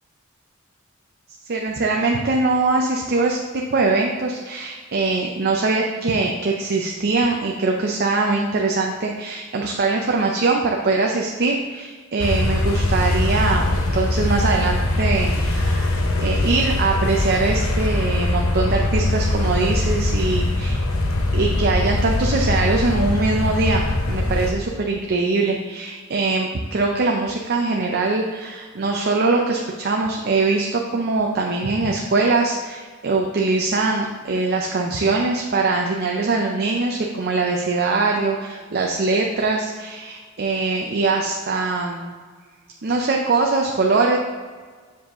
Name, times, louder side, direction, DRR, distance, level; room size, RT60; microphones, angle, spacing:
voice 1, 1.5-20.8 21.3-23.8 24.1-42.1 42.8-44.2, right 3 dB, 50° right, 1 dB, 0.6 m, -22 dB
sound 1, 12.2-24.5, left 2 dB, 85° left, 0.8 m, -22 dB
7.1 x 4.8 x 3.6 m, 1.5 s
head